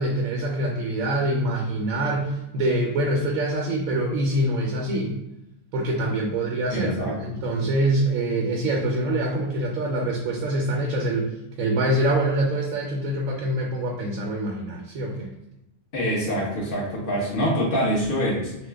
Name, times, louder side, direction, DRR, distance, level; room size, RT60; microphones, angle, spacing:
voice 1, 0.0-5.1 5.7-11.3 11.6-15.3, right 1 dB, 85° right, -1 dB, 1.0 m, -25 dB
voice 2, 6.7-7.4 15.9-18.6, equal, 45° left, -5 dB, 1.2 m, -25 dB
3.1 x 2.1 x 3.4 m, 0.90 s
omnidirectional pair, 1.4 m